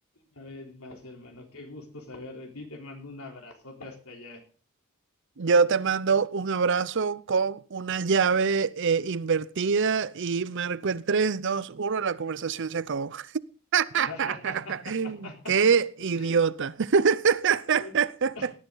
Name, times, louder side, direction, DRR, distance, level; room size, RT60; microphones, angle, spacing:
voice 1, 0.3-4.4 13.9-15.6 16.1-16.4 17.7-18.1 18.4-18.5, left 2 dB, 85° left, 3.7 m, -43 dB
voice 2, 5.4-13.3 13.7-15.2 15.5-18.5, right 5 dB, 60° right, 0.6 m, -25 dB
18.0 x 10.5 x 3.9 m
head